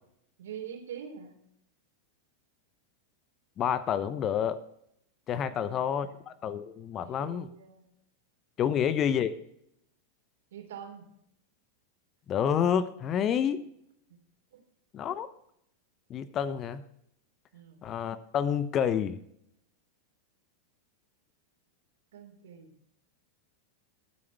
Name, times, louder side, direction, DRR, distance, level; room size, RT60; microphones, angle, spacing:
voice 1, 0.4-1.3 5.4-6.1 7.0-7.8 10.5-11.1 14.5-14.6 17.5-17.8 22.1-22.7, right 8 dB, 60° right, 5 dB, 3.3 m, -45 dB
voice 2, 3.6-4.6 5.3-7.5 8.6-9.3 12.3-13.6 14.9-15.3 16.1-16.8 17.8-19.2, left 8 dB, 30° left, 15 dB, 0.9 m, -29 dB
22.5 x 8.6 x 3.5 m, 0.73 s
figure-of-eight pair, 90°, 0 cm